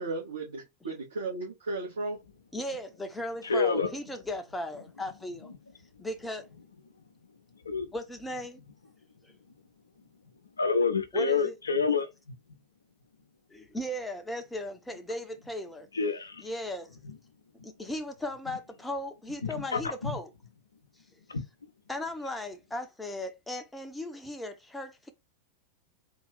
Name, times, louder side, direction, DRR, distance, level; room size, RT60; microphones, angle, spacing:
voice 1, 0.0-2.2, right 3 dB, 70° right, 1.3 m, -35 dB
voice 2, 2.5-5.5 6.0-6.4 7.9-8.6 9.2-9.3 11.1-11.5 13.5-15.9 16.4-17.0 17.6-20.3 21.9-25.1, left 1 dB, 5° left, 0.7 m, -37 dB
voice 3, 3.4-3.9 7.7-7.9 10.6-12.1 15.9-16.4 19.4-20.2 21.3-21.4, left 4 dB, 75° left, 0.6 m, -27 dB
3.7 x 2.5 x 3.3 m
figure-of-eight pair, 90°, 0 cm